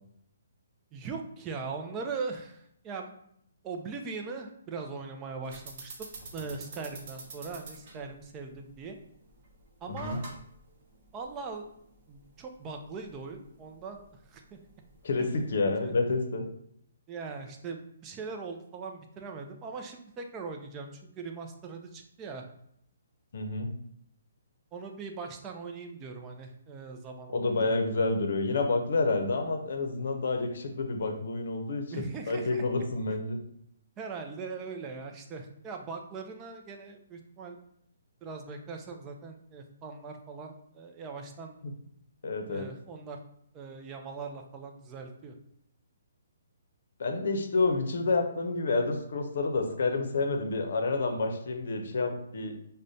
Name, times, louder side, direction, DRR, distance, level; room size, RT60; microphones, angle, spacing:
voice 1, 0.9-3.1 3.6-5.9 6.3-9.0 9.8-10.2 11.1-11.6 12.1-14.0 14.3-14.6 15.2-15.4 15.8-15.9 17.1-22.4 24.7-27.7 31.9-32.7 34.0-37.6 38.2-41.6 42.5-43.2 43.5-45.4, right 4 dB, 20° right, 3 dB, 0.4 m, -40 dB
sound 1, 5.4-15.5, right 3 dB, 45° right, 0.8 m, -49 dB
voice 2, 9.9-10.2 15.0-16.5 23.3-23.7 27.3-33.4 41.6-41.7 42.2-42.7 47.0-52.6, left 3 dB, 65° left, 4 dB, 0.6 m, -29 dB
4.8 x 2.2 x 2.7 m, 0.73 s
hypercardioid pair, 150°, 0 cm